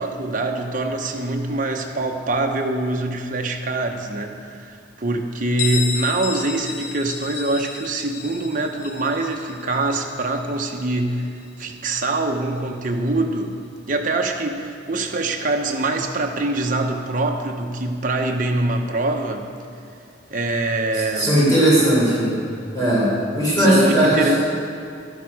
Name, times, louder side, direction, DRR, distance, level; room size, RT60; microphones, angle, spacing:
voice 1, 0.0-11.3 11.6-13.5 13.9-19.5 20.3-21.4 23.6-24.4, right 2 dB, 45° right, 3 dB, 0.9 m, -24 dB
Bell, 5.6-11.1, left 6 dB, 80° left, 0.9 m, -32 dB
voice 2, 20.9-22.3 22.7-24.3, right 1 dB, 20° left, -8 dB, 3.5 m, -18 dB
12.5 x 10.5 x 4.9 m, 2.4 s
head